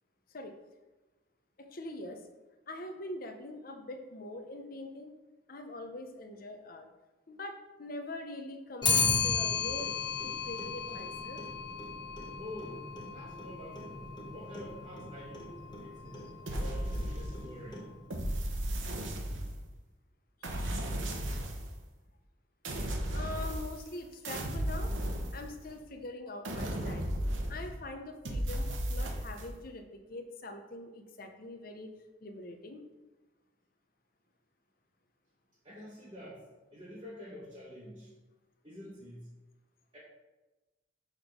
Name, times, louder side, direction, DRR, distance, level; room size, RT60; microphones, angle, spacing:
voice 1, 1.6-2.3 2.7-5.1 5.5-6.9 7.3-11.4 20.4-20.9 23.1-24.9 25.3-27.1 27.5-31.9 32.2-32.8, left 1 dB, 50° left, 5 dB, 0.7 m, -43 dB
Clock, 8.8-18.2, left 5 dB, 25° left, 0.9 m, -35 dB
voice 2, 12.4-16.2 16.6-17.9 35.6-36.4 36.7-38.1 38.6-39.3 39.9-40.0, left 1 dB, 25° right, -7 dB, 1.2 m, -47 dB
sound 1, 16.5-17.6 18.1-19.7 20.4-21.8 22.6-24.0 24.2-25.8 26.4-27.8 28.2-29.5, equal, 85° right, 1.0 m, -35 dB
6.5 x 3.6 x 5.2 m, 1.1 s
head